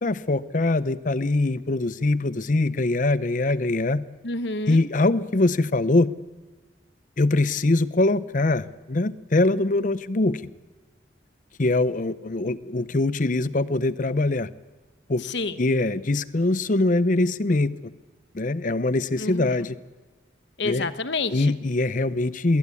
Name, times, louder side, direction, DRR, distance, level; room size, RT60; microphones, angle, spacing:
voice 1, 0.0-4.0 4.7-6.1 7.2-10.4 11.6-14.5 15.1-15.2 15.6-17.7 18.3-19.8 20.6-20.9 21.3-22.6, left 2 dB, 45° left, 16 dB, 0.7 m, -23 dB
voice 2, 4.2-4.8 15.2-15.5 19.2-19.6 20.6-21.5, left 3 dB, 65° left, 12 dB, 1.1 m, -29 dB
21.0 x 17.0 x 8.4 m, 1.3 s
head